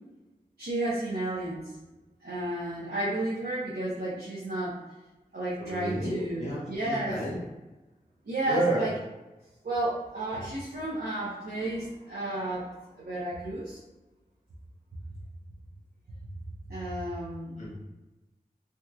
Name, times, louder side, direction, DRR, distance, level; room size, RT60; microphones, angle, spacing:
voice 1, 0.6-1.7 2.2-4.8 5.3-7.2 8.2-8.9 9.6-12.7 13.0-13.8 16.7-17.6, right 1 dB, 90° right, -9 dB, 0.8 m, -32 dB
voice 2, 5.6-7.4 8.5-8.9 17.6-17.7, right 1 dB, 50° left, -7 dB, 1.0 m, -31 dB
3.5 x 2.9 x 2.3 m, 1.1 s
wide cardioid pair, 75°, 15 cm